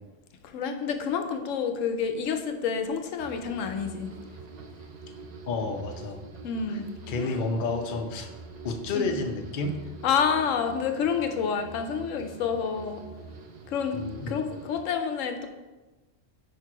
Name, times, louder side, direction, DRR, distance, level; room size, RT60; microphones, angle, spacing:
voice 1, 0.4-4.1 6.4-6.9 7.2-7.4 8.9-9.1 10.0-13.0 13.7-14.0 14.3-15.5, left 6 dB, 85° left, 6 dB, 1.0 m, -28 dB
sound 1, 3.2-14.8, right 3 dB, 50° right, 0.5 m, -45 dB
voice 2, 5.5-6.2 6.7-6.8 7.1-8.3 8.6-9.7 13.9-14.4, left 3 dB, 50° left, 4 dB, 0.7 m, -30 dB
5.1 x 4.6 x 4.9 m, 1.2 s
omnidirectional pair, 1.3 m